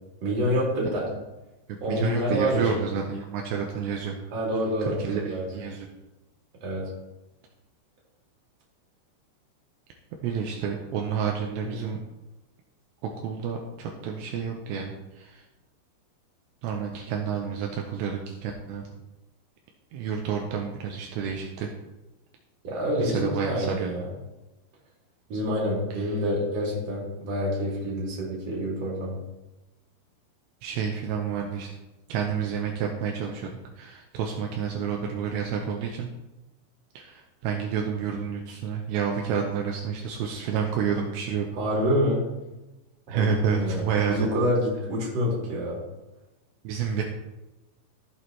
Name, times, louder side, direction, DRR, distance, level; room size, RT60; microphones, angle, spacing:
voice 1, 0.2-1.0 1.8-2.7 4.3-5.4 6.6-6.8 11.6-11.9 22.6-24.0 25.3-29.2 41.6-42.2 43.1-43.8 44.1-45.8, equal, 40° right, -4 dB, 3.4 m, -27 dB
voice 2, 1.9-4.2 4.8-5.9 10.2-12.0 13.2-15.4 16.6-18.8 19.9-21.7 23.0-23.9 25.9-26.1 30.6-31.7 32.1-36.1 37.0-41.5 43.1-44.3 46.6-47.0, right 7 dB, 80° right, 1 dB, 2.8 m, -29 dB
15.5 x 6.3 x 2.9 m, 1.0 s
omnidirectional pair, 5.4 m